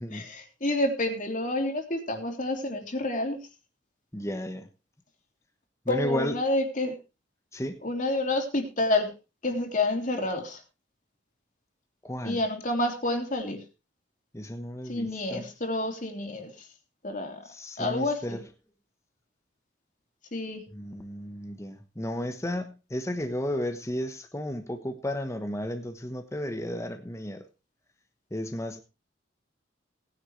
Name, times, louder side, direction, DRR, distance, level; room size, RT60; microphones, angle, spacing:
voice 1, 0.1-3.4 5.9-6.9 7.8-9.1 9.4-10.6 12.2-13.6 14.9-16.7 17.0-17.4 17.8-18.4 20.3-20.6, left 2 dB, 45° left, 3 dB, 3.3 m, -29 dB
voice 2, 4.1-4.7 5.9-6.3 7.5-7.7 12.0-12.4 14.3-15.5 17.4-18.4 20.7-27.4 28.3-28.8, left 1 dB, 15° left, 6 dB, 1.2 m, -33 dB
18.5 x 10.0 x 3.3 m, 0.29 s
head